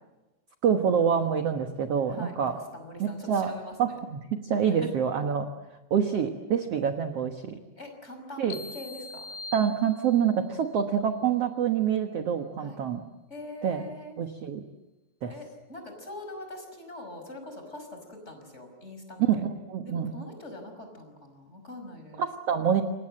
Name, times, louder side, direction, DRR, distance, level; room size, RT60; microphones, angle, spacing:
voice 1, 0.6-2.6 3.0-3.5 3.8-5.5 5.9-7.6 8.4-8.6 9.5-13.0 13.6-13.8 14.2-14.6 15.2-15.3 19.2-20.1 22.2-22.8, right 8 dB, 60° right, 6 dB, 1.6 m, -26 dB
voice 2, 2.1-4.0 4.6-4.9 7.7-9.2 12.6-12.8 13.3-14.2 15.3-19.4 19.8-22.2, left 1 dB, 15° left, 5 dB, 5.8 m, -43 dB
sound 1, 8.5-10.4, left 3 dB, 75° left, 3.1 m, -42 dB
28.5 x 25.0 x 7.8 m, 1.1 s
omnidirectional pair, 4.6 m